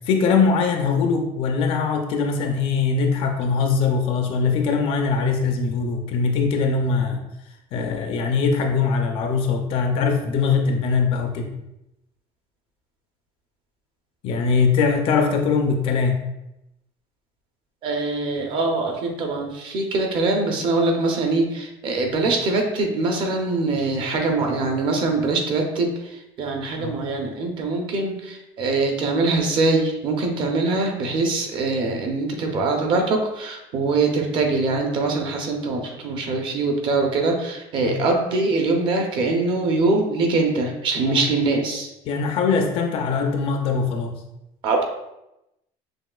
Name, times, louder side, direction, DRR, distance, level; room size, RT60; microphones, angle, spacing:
voice 1, 0.1-7.3 7.7-11.5 14.2-16.2 26.8-27.0 37.8-38.0 41.0-41.2 42.0-44.2, left 5 dB, 50° left, 4 dB, 0.5 m, -21 dB
voice 2, 17.8-41.9 44.6-44.8, right 3 dB, 40° right, 2 dB, 0.7 m, -23 dB
6.2 x 2.5 x 2.3 m, 0.89 s
cardioid pair, 175°, 12 cm